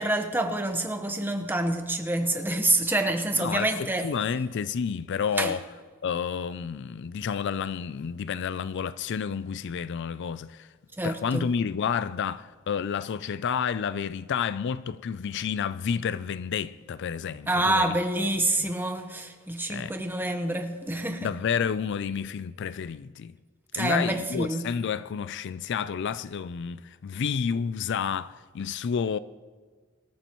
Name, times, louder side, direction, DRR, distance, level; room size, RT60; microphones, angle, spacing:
voice 1, 0.0-4.1 5.4-5.5 11.0-11.5 17.5-21.3 23.7-24.7, right 1 dB, 10° right, 1.1 m, -27 dB
voice 2, 3.4-5.6 6.0-10.7 11.0-18.0 18.6-18.7 19.7-19.9 21.2-23.3 23.8-29.2, left 7 dB, 55° left, 0.4 m, -30 dB
25.5 x 13.0 x 3.1 m
head